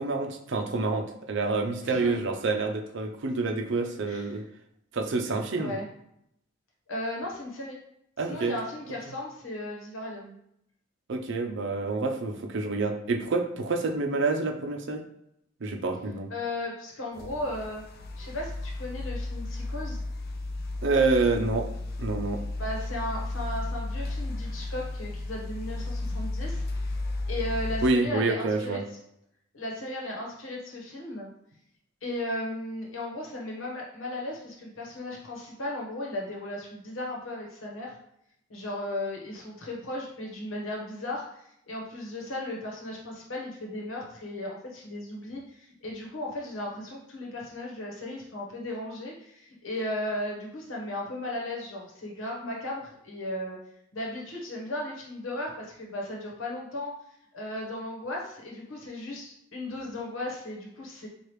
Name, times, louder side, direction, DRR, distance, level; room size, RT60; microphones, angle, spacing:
voice 1, 0.0-4.4 4.9-5.8 8.2-8.5 11.1-15.0 15.6-16.3 20.8-21.7 22.0-22.4 26.1-26.2 27.8-28.8, right 3 dB, 65° right, 4 dB, 0.5 m, -27 dB
voice 2, 1.8-2.2 4.0-4.4 5.6-5.8 6.9-7.8 8.3-10.4 16.3-17.8 18.2-20.0 22.6-28.8 29.5-31.3 32.0-38.0 38.5-53.6 53.9-56.9 57.3-61.1, left 1 dB, 80° left, -2 dB, 1.1 m, -36 dB
sound 1, 17.1-27.9, left 2 dB, 50° left, 0.4 m, -34 dB
4.8 x 2.4 x 3.1 m, 0.77 s
head